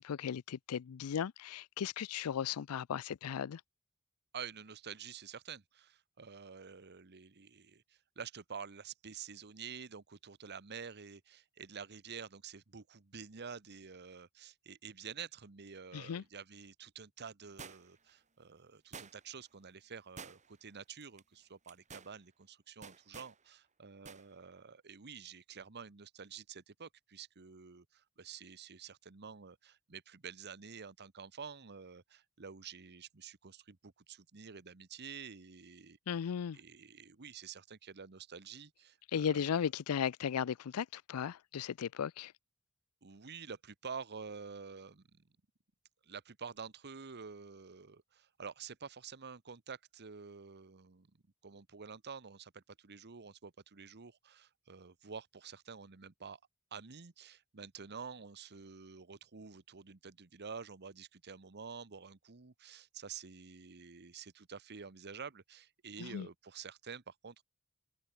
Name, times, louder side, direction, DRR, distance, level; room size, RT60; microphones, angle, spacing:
voice 1, 0.0-3.6 15.9-16.2 36.1-36.6 39.1-42.3 66.0-66.3, left 8 dB, 85° left, 0.4 m, -36 dB
voice 2, 4.3-36.0 36.5-39.4 43.0-45.2 46.0-51.1 51.4-56.4 56.7-67.4, right 6 dB, 50° right, 1.1 m, -49 dB
sound 1, 17.6-18.1 18.9-19.4 20.2-20.7 21.0-21.2 21.6-22.1 22.8-23.4 24.0-24.2 24.6-24.7, right 5 dB, 35° right, 2.6 m, -50 dB
head